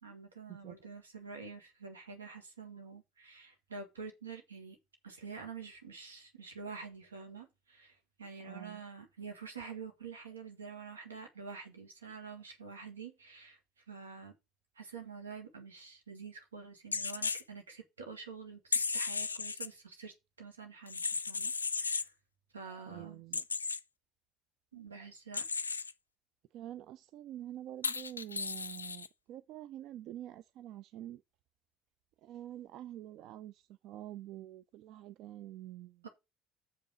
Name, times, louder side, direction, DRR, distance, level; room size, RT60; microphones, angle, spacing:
voice 1, 0.0-4.8 5.0-13.6 13.9-14.4 14.8-22.1 22.5-23.2 24.7-25.5 36.0-36.1, right 5 dB, 80° right, 2.0 m, -47 dB
voice 2, 8.4-8.8 22.9-23.4 26.5-31.2 32.2-36.0, right 13 dB, 55° right, 0.4 m, -47 dB
sound 1, 16.9-17.4 18.7-19.7 20.9-22.1 23.3-23.8 25.3-25.9 27.8-29.1, left 5 dB, 80° left, 0.4 m, -35 dB
6.7 x 5.4 x 6.4 m
figure-of-eight pair, 60°, 0 cm